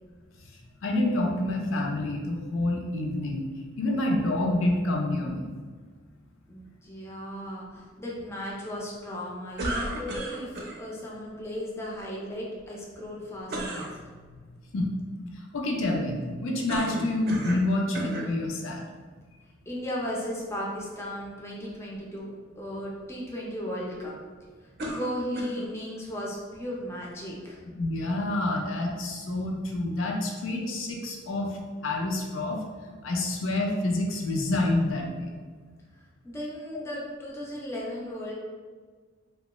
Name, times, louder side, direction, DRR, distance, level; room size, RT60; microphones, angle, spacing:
voice 1, 0.8-3.5 3.8-5.5 14.7-15.0 15.3-18.8 27.8-32.6 33.0-35.3, left 1 dB, 80° left, 0 dB, 0.5 m, -28 dB
voice 2, 6.5-13.9 19.7-24.1 24.9-27.6 36.0-38.3, equal, 15° left, -4 dB, 0.4 m, -36 dB
sound 1, 9.6-10.8 13.5-13.9 16.7-17.7 17.9-18.3 19.1-19.2 24.8-25.7, right 1 dB, 50° right, 0.5 m, -33 dB
2.9 x 2.2 x 3.0 m, 1.5 s
head